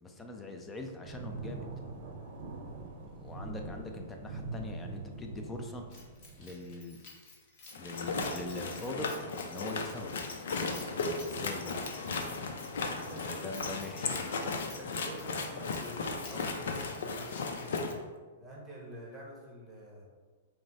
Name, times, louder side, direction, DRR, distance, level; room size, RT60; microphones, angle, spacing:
voice 1, 0.0-1.7 3.1-5.8 6.4-7.0 7.8-10.1 11.1-11.9 12.9-14.4, left 2 dB, 15° left, 3 dB, 0.5 m, -42 dB
sound 1, 1.0-6.5, right 3 dB, 50° right, 0.7 m, -43 dB
Keys jangling, 5.9-18.0, left 3 dB, 45° left, 1.1 m, -55 dB
sound 2, 7.7-17.9, left 4 dB, 75° left, 0.5 m, -36 dB
voice 2, 12.9-13.8 14.6-18.0 18.4-20.1, right 1 dB, 5° right, -5 dB, 1.0 m, -48 dB
4.5 x 2.1 x 4.0 m, 1.4 s
hypercardioid pair, 135°, 0 cm